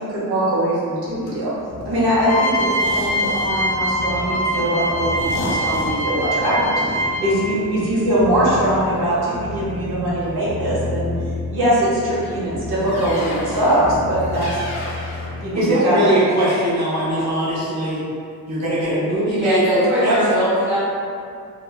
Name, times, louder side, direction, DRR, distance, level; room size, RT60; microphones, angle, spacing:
voice 1, 0.0-1.5 1.8-11.1 11.5-14.5 15.3-16.1, right 1 dB, 85° right, -9 dB, 0.9 m, -21 dB
sound 1, 1.1-15.4, left 2 dB, 90° left, 0.6 m, -31 dB
sound 2, 2.2-7.5, equal, 20° left, 0.5 m, -23 dB
voice 2, 15.5-18.0 18.5-20.2, right 1 dB, 45° right, -9 dB, 0.8 m, -20 dB
voice 3, 19.4-20.8, equal, 5° right, -14 dB, 1.0 m, -20 dB
3.0 x 2.1 x 2.2 m, 2.3 s
wide cardioid pair, 180°, 37 cm